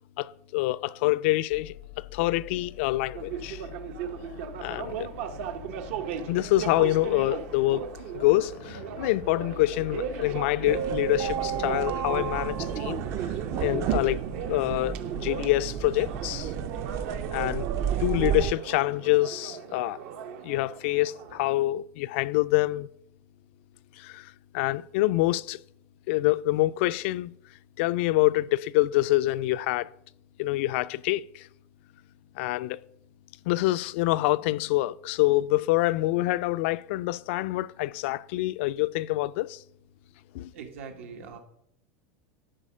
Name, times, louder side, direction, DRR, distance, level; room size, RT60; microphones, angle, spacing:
voice 1, 0.2-1.7 2.1-3.6 4.6-5.1 6.3-13.0 13.6-14.2 14.5-16.5 17.3-17.7 18.0-20.0 20.4-22.9 24.0-25.6 26.1-27.3 27.8-29.9 30.4-31.5 32.4-32.8 33.5-39.6 40.3-40.5, left 17 dB, 65° left, 0.3 m, -26 dB
sound 1, 1.5-18.2, left 15 dB, 85° left, 0.7 m, -46 dB
sound 2, 3.1-21.6, right 7 dB, 70° right, 0.9 m, -38 dB
sound 3, 10.7-18.5, right 10 dB, 40° right, 0.5 m, -31 dB
voice 2, 40.5-41.4, right 6 dB, 85° right, 1.7 m, -42 dB
11.0 x 4.3 x 6.1 m
supercardioid pair, 150°, 7 cm